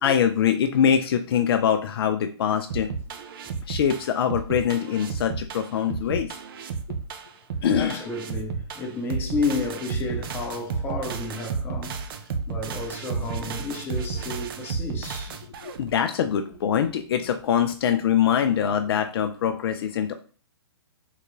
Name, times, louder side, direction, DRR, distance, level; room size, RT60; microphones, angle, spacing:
voice 1, 0.0-2.9 3.7-6.3 7.6-8.0 15.6-20.1, left 8 dB, 55° left, 0.4 m, -23 dB
sound 1, 2.7-15.9, right 5 dB, 55° right, 0.4 m, -32 dB
voice 2, 7.8-15.4, left 3 dB, 15° left, 0.6 m, -31 dB
3.7 x 2.2 x 3.0 m
hypercardioid pair, 135°, 15 cm